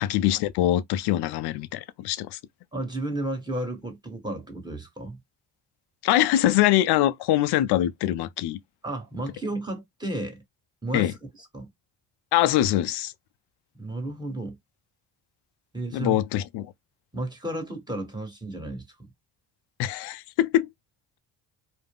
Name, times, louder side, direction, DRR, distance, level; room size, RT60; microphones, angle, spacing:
voice 1, 0.0-2.4 6.0-8.6 10.9-11.1 12.3-13.1 15.9-16.7 19.8-20.7, left 13 dB, 70° left, 0.5 m, -23 dB
voice 2, 2.7-5.2 8.8-10.4 10.8-11.7 13.8-14.6 15.7-16.2 17.1-19.1, right 1 dB, 10° right, 1.2 m, -33 dB
2.4 x 2.1 x 3.5 m
supercardioid pair, 75°, 42 cm